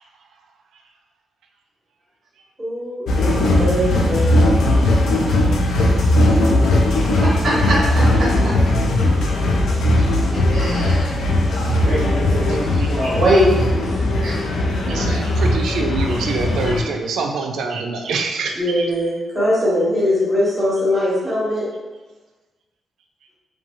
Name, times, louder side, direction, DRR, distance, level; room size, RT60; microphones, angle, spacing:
voice 1, 2.6-4.3 14.9-15.3 18.5-21.7, left 1 dB, 10° right, -9 dB, 1.1 m, -21 dB
sound 1, 3.1-16.8, left 1 dB, 80° left, 0.4 m, -18 dB
voice 2, 7.2-8.5 9.2-9.3 10.0-10.1 10.5-11.1 11.8-13.8 14.2-14.3, equal, 50° right, -7 dB, 0.7 m, -21 dB
voice 3, 12.1-12.6 14.6-18.8, right 3 dB, 90° right, 3 dB, 0.3 m, -25 dB
2.6 x 2.3 x 2.9 m, 1.2 s
wide cardioid pair, 135°, 0 cm